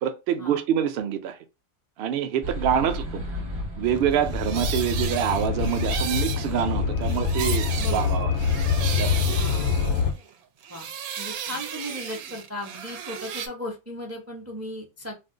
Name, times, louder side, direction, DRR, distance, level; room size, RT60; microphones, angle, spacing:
voice 1, 0.0-1.4 2.0-3.2 3.8-8.4 9.0-9.2, right 9 dB, 65° right, 0.6 m, -26 dB
sound 1, 2.4-8.9, equal, 40° right, 1.0 m, -34 dB
sound 2, 4.1-10.3 10.6-13.5, right 8 dB, 85° right, 1.0 m, -34 dB
sound 3, 4.2-10.1, left 6 dB, 75° left, 0.5 m, -25 dB
voice 2, 7.8-8.1 9.3-9.7 10.7-10.9 11.2-15.1, left 1 dB, 20° right, 0.4 m, -37 dB
2.5 x 2.2 x 3.6 m
omnidirectional pair, 1.5 m